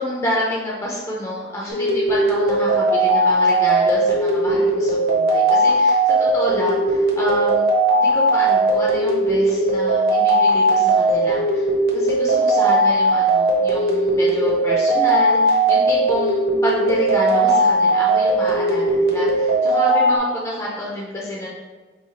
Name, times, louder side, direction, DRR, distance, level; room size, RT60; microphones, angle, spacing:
voice 1, 0.0-7.7 7.9-11.7 11.9-21.5, equal, 15° left, -5 dB, 0.6 m, -28 dB
sound 1, 1.7-20.2, right 1 dB, 60° right, 1.1 m, -18 dB
4.6 x 2.5 x 4.5 m, 1.3 s
head